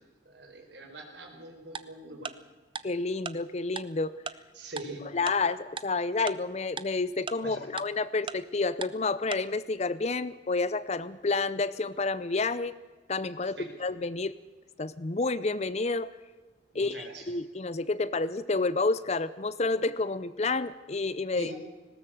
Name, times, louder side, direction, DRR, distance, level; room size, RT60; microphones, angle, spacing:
voice 1, 0.2-2.3 4.5-5.1 7.4-7.7 13.6-13.7 16.7-17.3 21.3-21.6, right 1 dB, 65° right, 3 dB, 4.5 m, -43 dB
Tick-tock, 1.8-1.9 2.3-2.4 2.8-2.9 3.3-3.4 3.8-3.9 4.3-4.4 4.8-4.9 5.3-5.4 5.8-5.9 6.3-6.4 6.8-6.9 7.3-7.4 7.8-7.9 8.3-8.4 8.8-8.9 9.3-9.4, right 5 dB, 25° right, 0.6 m, -35 dB
voice 2, 2.8-4.2 5.1-12.7 13.1-14.3 14.8-16.1 16.7-21.5, left 3 dB, 35° left, 16 dB, 0.6 m, -29 dB
19.5 x 17.5 x 7.7 m, 1.2 s
head